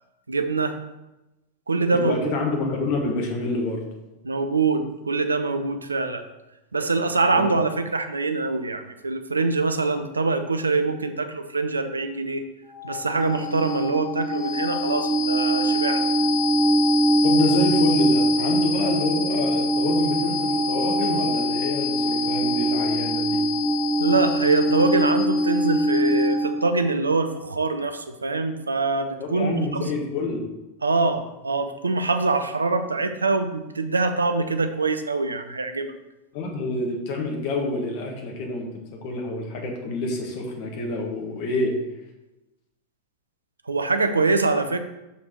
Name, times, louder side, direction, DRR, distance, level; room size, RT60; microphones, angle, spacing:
voice 1, 0.3-0.8 1.7-2.3 4.2-6.2 6.7-12.4 12.8-16.0 24.0-29.9 30.8-35.9 43.7-44.8, right 3 dB, 75° right, 9 dB, 0.6 m, -24 dB
voice 2, 1.9-3.8 7.3-7.5 17.2-23.4 29.2-30.4 36.3-41.8, left 2 dB, 45° left, 1 dB, 1.6 m, -27 dB
sound 1, 12.7-26.6, equal, 10° left, 1.4 m, -22 dB
6.1 x 5.8 x 4.3 m, 0.99 s
figure-of-eight pair, 90°, 0 cm